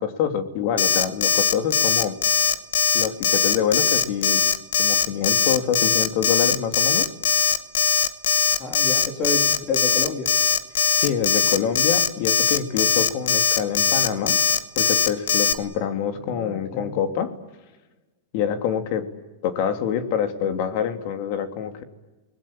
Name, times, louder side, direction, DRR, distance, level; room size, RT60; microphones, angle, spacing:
voice 1, 0.0-2.1 2.9-4.4 4.8-7.0 11.0-14.4 14.8-17.3 18.3-19.1 19.4-21.8, left 8 dB, 55° left, 8 dB, 2.9 m, -26 dB
Alarm, 0.8-15.5, left 7 dB, 85° left, 1.6 m, -20 dB
voice 2, 8.6-10.3 12.8-13.0 16.2-17.0, left 3 dB, 35° left, 5 dB, 3.5 m, -30 dB
29.0 x 21.0 x 8.7 m, 1.1 s
hypercardioid pair, 130°, 0 cm